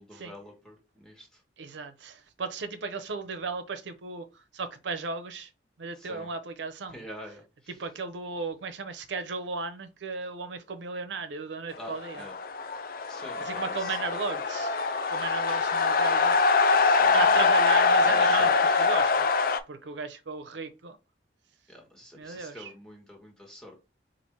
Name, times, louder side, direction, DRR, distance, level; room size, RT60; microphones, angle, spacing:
voice 1, 0.0-1.4 5.9-6.3 6.9-7.8 11.8-12.4 13.1-14.1 16.7-17.4 18.0-18.9 21.7-23.8, left 1 dB, 5° left, 1.3 m, -46 dB
voice 2, 1.6-5.5 5.8-7.0 7.7-12.2 13.4-14.8 15.1-18.5 18.8-21.0 22.1-22.7, right 4 dB, 80° right, 0.6 m, -36 dB
sound 1, 11.9-19.6, left 4 dB, 50° left, 0.4 m, -23 dB
4.2 x 2.5 x 4.5 m
head